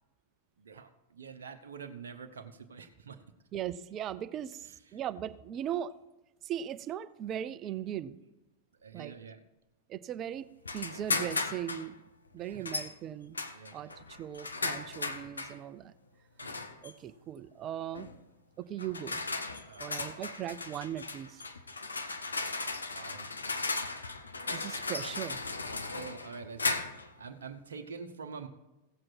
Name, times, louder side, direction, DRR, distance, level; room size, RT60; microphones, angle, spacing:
voice 1, 0.6-3.2 4.6-5.1 7.7-7.8 8.8-9.4 12.4-12.8 13.5-14.0 16.4-16.5 19.7-20.3 22.9-23.3 25.9-26.8 27.2-28.5, right 5 dB, 65° right, 5 dB, 0.8 m, -47 dB
voice 2, 3.5-5.9 6.4-8.2 8.9-9.2 9.9-12.0 12.3-13.4 13.7-15.9 16.8-18.1 18.6-19.2 19.8-21.4 24.5-25.4, right 10 dB, 30° right, 15 dB, 0.5 m, -38 dB
sound 1, 10.6-11.9 12.6-12.9 13.3-15.6 16.4-16.9 17.9-18.2 18.8-27.1, left 3 dB, 75° left, 0.8 m, -36 dB
16.0 x 7.6 x 4.5 m, 1.0 s
figure-of-eight pair, 90°, 0 cm